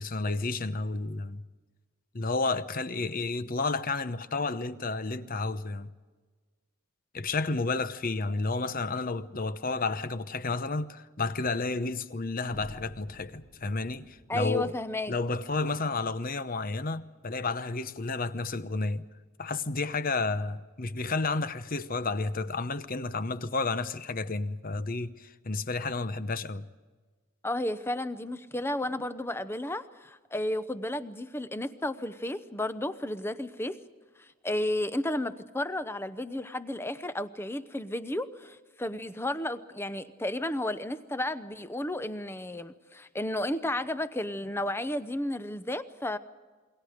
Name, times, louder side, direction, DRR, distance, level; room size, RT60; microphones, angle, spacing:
voice 1, 0.0-1.4 2.1-5.9 7.1-14.7 15.1-19.1 19.4-26.7, left 3 dB, 40° left, 0.9 m, -31 dB
sound 1, 12.5-16.5, equal, 75° left, 5.2 m, -52 dB
voice 2, 14.3-15.1 27.4-33.8 34.2-46.2, left 1 dB, 10° left, 0.8 m, -33 dB
28.5 x 22.5 x 5.1 m
head